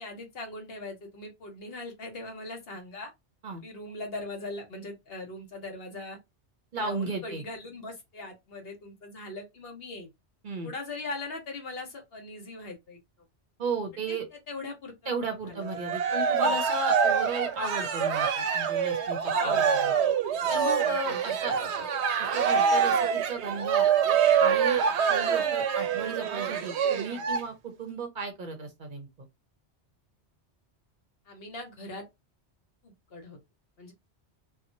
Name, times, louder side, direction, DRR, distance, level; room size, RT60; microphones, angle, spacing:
voice 1, 0.0-3.1 3.6-6.2 6.8-10.1 10.6-13.0 14.1-14.2 14.5-15.1 15.5-15.8 16.4-16.5 19.3-20.0 20.4-21.8 22.3-22.4 31.3-32.0 32.8-33.4 33.8-33.9, left 2 dB, 60° left, 1.1 m, -40 dB
voice 2, 6.7-7.4 10.4-10.7 13.6-14.3 15.1-19.6 20.5-21.6 22.2-23.9 24.4-24.8 25.1-29.3, right 3 dB, 50° right, 0.7 m, -35 dB
Cheering, 15.6-27.4, right 7 dB, 80° right, 0.9 m, -25 dB
2.9 x 2.2 x 2.6 m
omnidirectional pair, 1.1 m